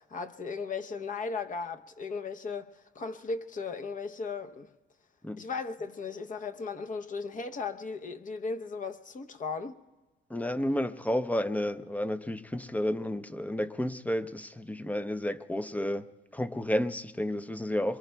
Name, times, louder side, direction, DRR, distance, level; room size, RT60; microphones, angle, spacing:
voice 1, 0.0-4.7 5.4-9.8, left 4 dB, 40° left, 0.8 m, -36 dB
voice 2, 10.3-16.1 16.3-18.0, left 1 dB, 5° left, 0.5 m, -31 dB
25.5 x 23.0 x 2.3 m
cardioid pair, 90°, 20 cm